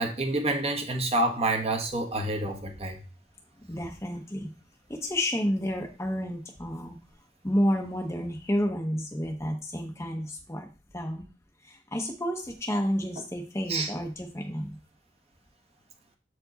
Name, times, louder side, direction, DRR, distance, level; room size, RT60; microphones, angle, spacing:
voice 1, 0.0-3.0 13.7-13.9, right 2 dB, 35° right, 3 dB, 1.3 m, -28 dB
voice 2, 3.6-4.5 4.9-7.0 7.4-10.7 10.9-11.2 11.6-14.8, equal, 15° left, 1 dB, 0.8 m, -30 dB
7.3 x 4.7 x 4.0 m, 0.34 s
head